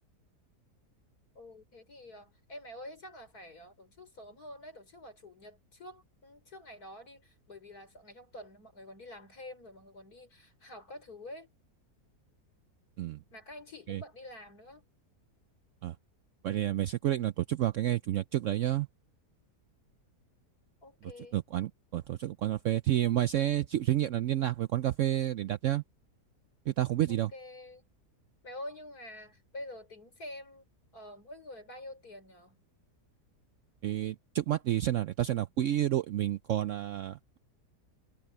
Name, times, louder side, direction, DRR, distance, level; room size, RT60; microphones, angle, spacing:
voice 1, 1.4-11.5 13.3-14.9 20.8-21.4 27.1-27.9 28.4-30.7 30.9-32.6, left 1 dB, 65° left, 5.8 m, -47 dB
voice 2, 16.4-18.9 21.3-25.8 26.7-27.3 33.8-37.4, right 12 dB, 70° right, 0.7 m, -30 dB
omnidirectional pair, 1.7 m